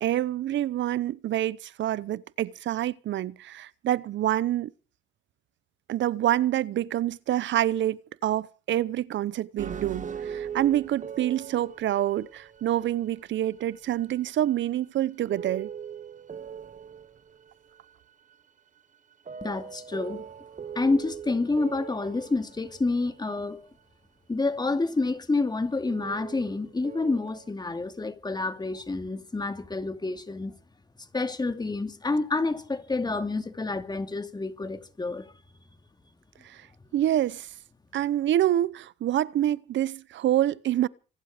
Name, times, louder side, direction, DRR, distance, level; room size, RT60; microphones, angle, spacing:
voice 1, 0.0-4.7 5.9-15.7 36.4-36.7 36.9-37.5 37.9-40.9, right 12 dB, 70° right, 0.8 m, -27 dB
sound 1, 9.6-14.7 15.0-15.1 15.3-17.9 18.3-18.4 19.1-23.3 25.9-27.5, right 7 dB, 40° right, 1.2 m, -41 dB
voice 2, 19.4-20.2 20.7-23.7 24.3-30.6 31.1-35.3, left 3 dB, 20° left, 2.6 m, -28 dB
25.0 x 11.5 x 5.0 m
cardioid pair, 90°, 20 cm